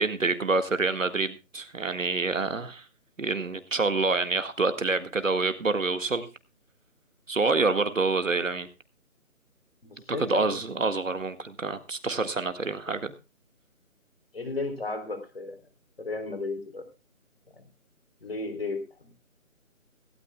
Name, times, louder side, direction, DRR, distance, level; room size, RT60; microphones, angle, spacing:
voice 1, 0.0-2.8 3.2-6.3 7.3-8.7 10.1-13.1, right 3 dB, 60° right, 10 dB, 1.9 m, -27 dB
voice 2, 9.8-10.8 14.3-15.6 16.0-16.8 17.5-17.6 18.2-19.1, left 3 dB, 40° left, 8 dB, 3.7 m, -34 dB
18.0 x 16.5 x 2.3 m, 0.29 s
figure-of-eight pair, 180°, 43 cm